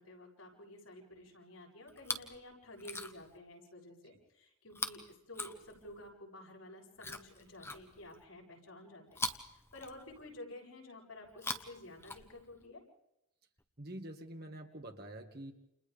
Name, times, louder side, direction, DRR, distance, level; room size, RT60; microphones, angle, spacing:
voice 1, 0.0-12.8, left 1 dB, 85° left, -1 dB, 7.4 m, -52 dB
Chewing mastication, 1.9-2.4 2.7-3.4 4.7-6.1 7.0-8.2 9.1-10.4 11.3-12.7 13.6-13.7, left 3 dB, 10° left, 1.0 m, -43 dB
voice 2, 13.8-15.5, right 1 dB, 45° right, 3 dB, 2.0 m, -46 dB
30.0 x 29.5 x 3.5 m, 0.86 s
head